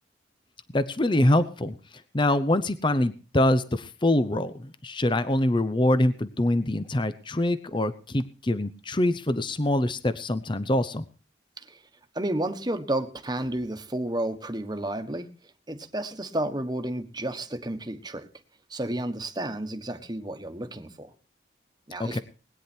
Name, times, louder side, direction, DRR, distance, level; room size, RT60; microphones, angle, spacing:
voice 1, 0.7-1.8 2.1-11.1 22.0-22.2, left 1 dB, 25° left, 0.8 m, -24 dB
voice 2, 12.1-15.3 15.7-18.3 18.7-21.1 21.9-22.2, right 1 dB, 20° right, 1.4 m, -31 dB
20.5 x 9.9 x 4.5 m
head